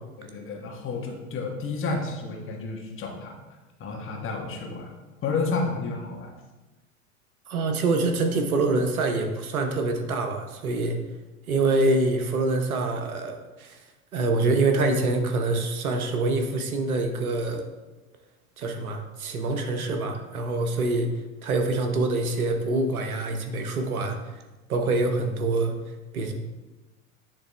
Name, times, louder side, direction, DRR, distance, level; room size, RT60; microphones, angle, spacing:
voice 1, 0.2-3.3 3.8-4.9 5.2-6.3, left 3 dB, 30° left, 0 dB, 1.4 m, -31 dB
voice 2, 7.5-11.0 11.5-13.8 14.1-17.6 18.6-21.1 21.4-24.2 24.7-25.7 26.1-26.3, right 2 dB, 80° right, 5 dB, 1.0 m, -25 dB
10.0 x 3.4 x 3.3 m, 1.2 s
hypercardioid pair, 90°, 43 cm